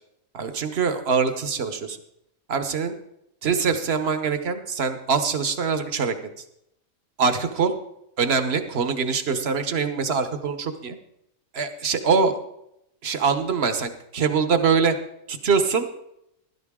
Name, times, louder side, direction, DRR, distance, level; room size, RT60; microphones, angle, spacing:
voice 1, 0.3-2.0 2.5-2.9 3.4-6.1 7.2-7.7 8.2-11.0 11.5-12.4 13.0-15.0 15.3-15.9, right 5 dB, 50° right, 9 dB, 1.2 m, -23 dB
15.0 x 12.5 x 3.7 m, 0.82 s
omnidirectional pair, 1.4 m